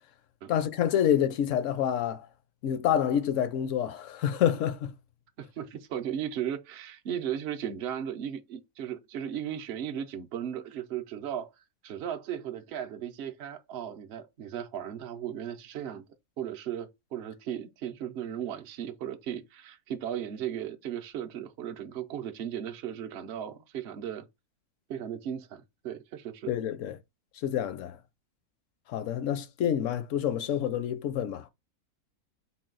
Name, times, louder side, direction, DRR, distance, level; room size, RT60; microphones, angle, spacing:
voice 1, 0.5-2.3 2.6-4.9 26.5-27.0 27.3-28.0 28.9-31.5, left 9 dB, 70° left, 0.8 m, -28 dB
voice 2, 5.4-11.5 11.8-16.0 16.4-24.3 24.9-26.5, right 9 dB, 60° right, 0.7 m, -36 dB
4.0 x 2.2 x 3.7 m
omnidirectional pair, 1.6 m